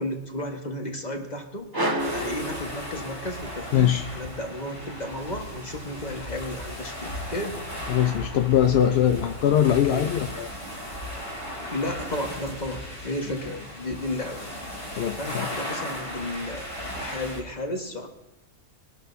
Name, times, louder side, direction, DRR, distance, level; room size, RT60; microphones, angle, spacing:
voice 1, 0.0-1.7 2.0-7.6 9.7-10.1 11.7-14.5 15.2-18.1, left 1 dB, 30° left, 2 dB, 1.6 m, -33 dB
sound 1, 1.7-3.5, right 1 dB, 15° right, 1.5 m, -30 dB
sound 2, 2.0-17.4, equal, 45° left, 3.7 m, -36 dB
voice 2, 3.7-4.1 7.9-10.5 13.5-13.6 15.0-15.5, left 10 dB, 65° left, 6 dB, 0.6 m, -22 dB
22.0 x 12.5 x 2.7 m, 1.0 s
omnidirectional pair, 1.5 m